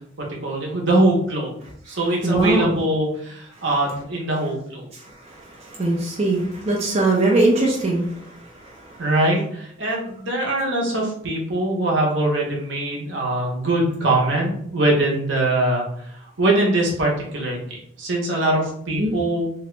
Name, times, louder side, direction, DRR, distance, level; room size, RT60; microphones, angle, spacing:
voice 1, 0.2-1.5 1.9-4.9 9.0-15.8 16.4-19.5, right 2 dB, 70° right, -2 dB, 0.9 m, -22 dB
voice 2, 2.2-2.8 5.6-8.1 18.9-19.1, right 2 dB, 35° right, -3 dB, 0.5 m, -20 dB
2.8 x 2.3 x 3.1 m, 0.67 s
head